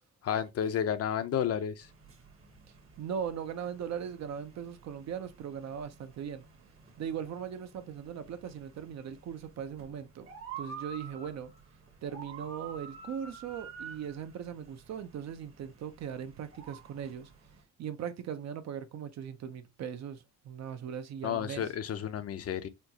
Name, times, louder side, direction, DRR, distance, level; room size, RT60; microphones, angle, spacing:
voice 1, 0.2-1.9 21.2-22.7, left 9 dB, 50° left, 0.6 m, -31 dB
sound 1, 1.8-17.6, right 6 dB, 45° right, 1.2 m, -50 dB
voice 2, 3.0-6.5 7.0-10.3 10.6-11.5 12.0-17.3 17.8-21.6, right 8 dB, 60° right, 0.7 m, -39 dB
4.4 x 2.3 x 2.8 m
cardioid pair, 90°, 30 cm